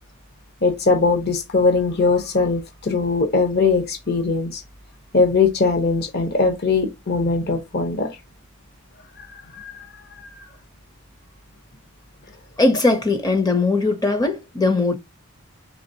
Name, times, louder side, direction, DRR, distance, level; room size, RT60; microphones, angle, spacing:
voice 1, 0.6-4.6 5.1-8.1 9.6-9.7, left 4 dB, 50° left, 0.9 m, -20 dB
voice 2, 12.6-15.0, left 3 dB, 15° left, 0.6 m, -19 dB
4.8 x 3.4 x 2.7 m
head